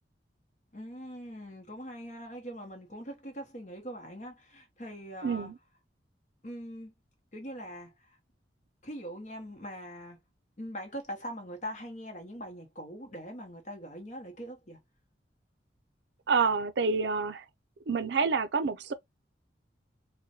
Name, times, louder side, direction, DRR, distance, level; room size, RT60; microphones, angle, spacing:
voice 1, 0.7-5.5 6.4-6.9 7.3-8.2 8.8-10.2 10.6-14.8, equal, 40° left, 0.9 m, -42 dB
voice 2, 5.2-5.5 16.3-17.4 17.9-18.9, right 4 dB, 70° right, 0.5 m, -28 dB
3.8 x 2.2 x 2.8 m
head